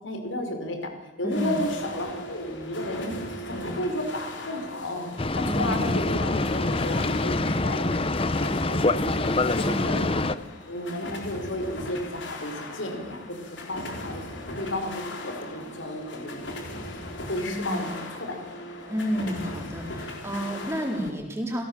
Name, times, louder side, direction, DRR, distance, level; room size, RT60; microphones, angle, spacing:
voice 1, 0.0-0.9 1.2-3.1 3.4-5.1 5.3-9.3 9.6-10.3 10.7-14.2 14.5-16.6 17.3-18.4, left 1 dB, 90° left, 5 dB, 4.8 m, -33 dB
voice 2, 1.2-1.6 5.4-5.8 9.6-9.9 17.4-17.9 18.9-21.6, equal, 15° right, 1 dB, 4.2 m, -30 dB
sound 1, 1.3-21.1, left 1 dB, 75° left, 3.9 m, -38 dB
Boat Water vehicle, 5.2-10.3, left 2 dB, 30° left, 0.7 m, -25 dB
28.5 x 17.0 x 7.3 m, 1.1 s
head